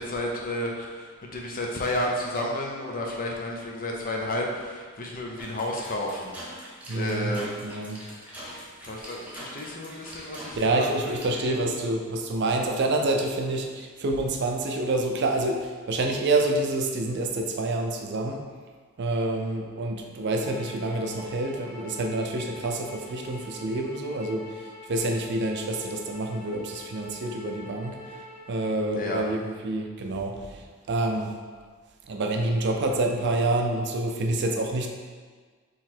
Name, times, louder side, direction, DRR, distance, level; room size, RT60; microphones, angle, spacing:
voice 1, 0.0-6.4 6.9-7.5 8.4-8.6 8.8-11.6 29.0-29.2, left 1 dB, 40° left, -1 dB, 0.7 m, -32 dB
sound 1, 5.4-11.3, equal, 5° right, 0.8 m, -43 dB
voice 2, 6.9-8.0 10.6-18.4 19.0-28.0 28.5-31.3 32.1-34.9, right 2 dB, 55° right, 3 dB, 0.5 m, -27 dB
sound 2, 20.4-28.8, left 1 dB, 75° left, 1.0 m, -44 dB
3.9 x 3.1 x 4.4 m, 1.5 s
head